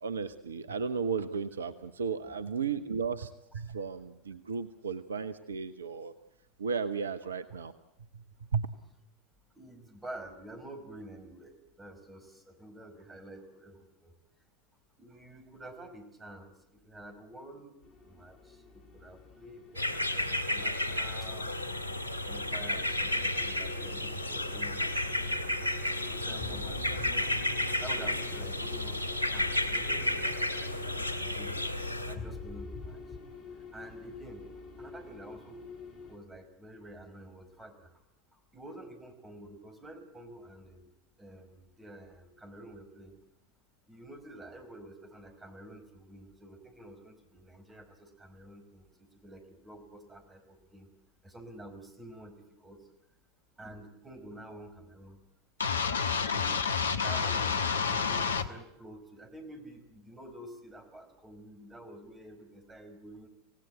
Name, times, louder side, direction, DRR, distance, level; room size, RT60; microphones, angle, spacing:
voice 1, 0.0-6.1 6.6-7.7 8.1-8.2 8.5-8.7, right 5 dB, 75° right, 13 dB, 1.0 m, -34 dB
voice 2, 9.5-11.5 11.8-14.1 15.0-16.5 16.8-17.8 18.1-21.6 22.2-25.7 26.1-27.2 27.8-31.1 31.4-31.5 32.1-33.0 33.7-34.5 34.8-35.6 36.1-37.9 38.5-40.9 41.2-43.1 43.9-48.8 49.2-50.9 51.2-52.8 53.6-55.2 56.3-56.5 57.0-63.3, right 1 dB, 15° right, 8 dB, 5.0 m, -49 dB
sound 1, 17.8-36.2, left 4 dB, 40° left, 7.3 m, -47 dB
sound 2, 19.8-32.2, left 1 dB, 90° right, 2.1 m, -32 dB
sound 3, 55.6-58.5, left 6 dB, 75° left, 1.3 m, -29 dB
27.0 x 18.0 x 9.2 m, 0.85 s
figure-of-eight pair, 80°, 0 cm